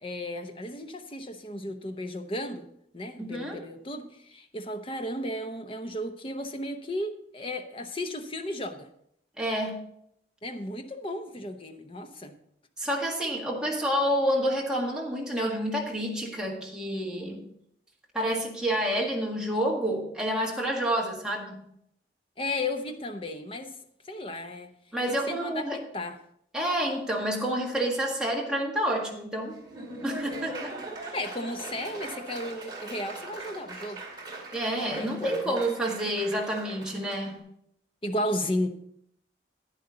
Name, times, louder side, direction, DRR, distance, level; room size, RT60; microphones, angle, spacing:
voice 1, 0.0-2.7 2.9-8.9 10.4-12.4 22.4-23.8 24.1-24.7 25.1-26.2 31.1-34.0 35.0-35.6 38.0-38.7, left 1 dB, 30° left, 7 dB, 0.8 m, -34 dB
voice 2, 3.2-3.6 9.4-9.8 12.8-17.4 18.1-21.6 24.9-25.8 26.5-29.6 30.0-30.8 34.5-37.4, equal, 5° right, -2 dB, 1.7 m, -29 dB
Laughter / Applause, 29.5-37.3, right 2 dB, 25° right, 2.3 m, -41 dB
10.5 x 10.0 x 3.8 m, 0.72 s
head